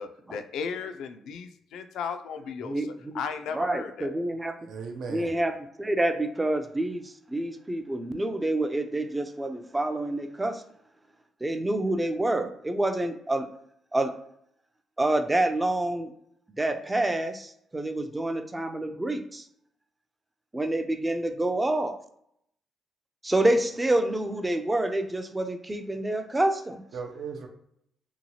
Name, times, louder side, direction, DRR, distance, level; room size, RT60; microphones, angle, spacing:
voice 1, 0.0-2.9 3.1-4.1, left 6 dB, 80° left, 8 dB, 0.3 m, -35 dB
voice 2, 2.6-3.1 3.5-4.5 5.1-10.6 11.4-13.5 13.9-14.2 15.0-16.1 16.6-19.5 20.5-22.0 23.2-26.8, right 1 dB, 15° right, 7 dB, 0.4 m, -27 dB
voice 3, 4.6-5.3 26.9-27.5, right 5 dB, 70° right, 3 dB, 0.5 m, -37 dB
2.8 x 2.2 x 2.8 m, 0.71 s
cardioid pair, 90°, 0 cm